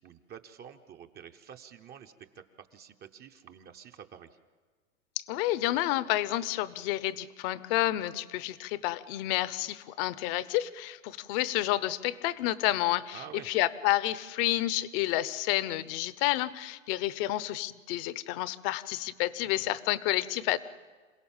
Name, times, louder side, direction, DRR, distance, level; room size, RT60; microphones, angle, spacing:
voice 1, 0.0-4.4 13.1-13.5 19.4-19.8, right 8 dB, 25° right, 6 dB, 0.8 m, -49 dB
voice 2, 5.2-20.6, left 15 dB, 45° left, 16 dB, 0.9 m, -30 dB
27.5 x 17.0 x 7.3 m, 1.5 s
hypercardioid pair, 135°, 40 cm